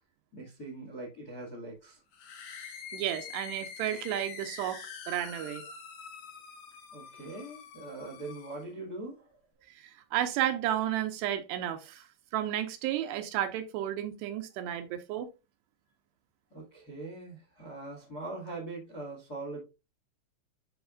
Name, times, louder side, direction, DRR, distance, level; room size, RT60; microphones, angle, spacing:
voice 1, 0.3-2.0 6.9-9.3 16.5-19.6, right 2 dB, 40° left, 1.3 m, -42 dB
sound 1, 2.1-8.7, left 6 dB, 65° left, 1.9 m, -45 dB
voice 2, 2.9-5.6 9.7-12.0 12.3-15.3, right 11 dB, 80° right, 2.8 m, -32 dB
10.5 x 4.7 x 2.4 m
omnidirectional pair, 5.1 m